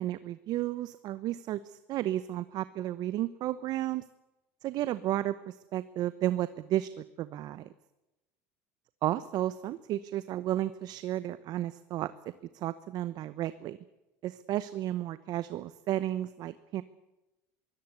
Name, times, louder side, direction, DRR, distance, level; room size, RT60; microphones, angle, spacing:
voice 1, 0.0-4.0 4.6-7.7 9.0-12.1 12.5-13.8 14.2-16.8, right 13 dB, 55° right, 15 dB, 0.9 m, -33 dB
22.5 x 17.0 x 8.2 m, 0.97 s
supercardioid pair, 100°, 8 cm